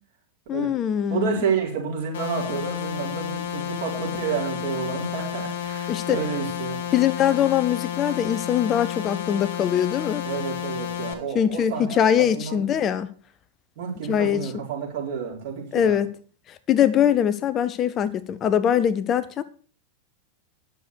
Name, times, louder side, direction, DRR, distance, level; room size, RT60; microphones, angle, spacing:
voice 1, 0.5-1.4 5.9-6.2 6.9-10.2 11.3-13.1 14.1-14.4 15.7-16.1 16.7-19.4, left 9 dB, 30° left, 0.6 m, -22 dB
voice 2, 1.1-6.8 10.2-12.7 13.8-16.0, right 6 dB, 50° right, 4.5 m, -30 dB
sound 1, 2.1-11.1, left 10 dB, 55° left, 2.2 m, -31 dB
10.0 x 6.8 x 6.6 m
figure-of-eight pair, 90°, 0 cm